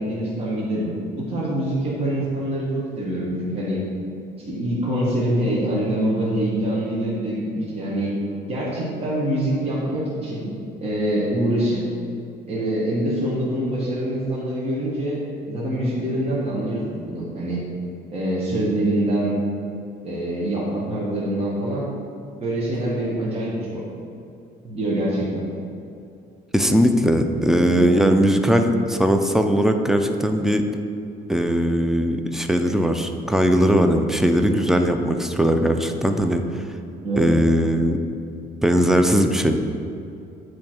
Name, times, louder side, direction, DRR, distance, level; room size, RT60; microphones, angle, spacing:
voice 1, 0.0-3.8 4.5-8.1 8.5-10.5 10.8-11.8 12.5-15.2 15.5-17.6 18.1-19.4 20.0-21.9 22.4-23.8 24.6-25.4 27.5-28.1 37.0-37.3, right 1 dB, 35° right, -7 dB, 1.4 m, -25 dB
voice 2, 26.5-30.6 31.3-36.6 37.2-38.0 38.6-39.6, equal, 5° right, 5 dB, 0.4 m, -19 dB
8.5 x 3.1 x 4.4 m, 2.5 s
cardioid pair, 110°, 17 cm